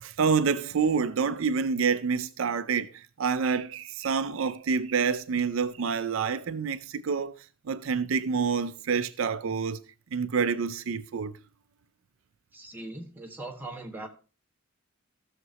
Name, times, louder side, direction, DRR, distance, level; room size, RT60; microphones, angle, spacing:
voice 1, 0.0-7.3 7.7-9.8 10.1-11.3, right 5 dB, 70° right, 0.4 m, -27 dB
voice 2, 12.5-14.1, right 2 dB, 10° right, 1.5 m, -40 dB
15.5 x 6.6 x 2.8 m
head